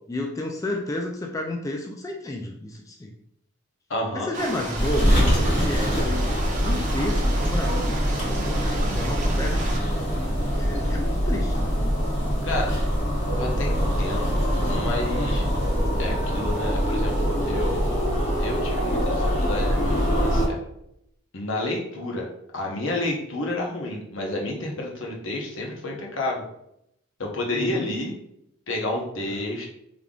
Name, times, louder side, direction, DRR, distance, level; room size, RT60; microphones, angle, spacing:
voice 1, 0.1-3.1 4.1-6.3 6.6-10.0 10.6-11.7 27.5-27.9 29.3-29.4, left 1 dB, 15° left, 1 dB, 0.3 m, -32 dB
voice 2, 3.9-4.3 12.4-12.7 13.4-15.4 16.0-20.6 21.3-22.3 22.5-26.5 27.2-28.2 28.7-29.7, left 1 dB, 70° left, -1 dB, 0.9 m, -30 dB
sound 1, 4.3-9.8, right 2 dB, 40° right, 0.7 m, -33 dB
sound 2, 4.8-20.5, equal, 40° left, 1.5 m, -24 dB
3.6 x 3.4 x 2.4 m, 0.76 s
head